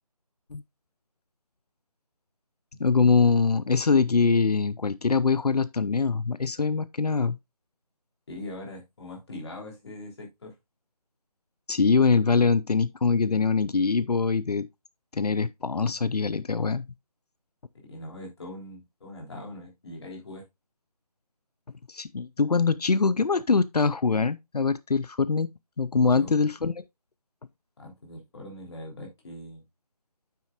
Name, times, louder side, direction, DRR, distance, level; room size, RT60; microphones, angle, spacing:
voice 1, 2.8-7.4 11.7-14.7 15.1-16.9 21.9-25.5 25.8-26.7, left 4 dB, 80° left, 0.6 m, -23 dB
voice 2, 8.3-10.5 17.8-20.4 26.0-26.4 27.8-29.6, left 1 dB, 40° left, 3.3 m, -41 dB
9.3 x 7.5 x 2.4 m
figure-of-eight pair, 160°, 20 cm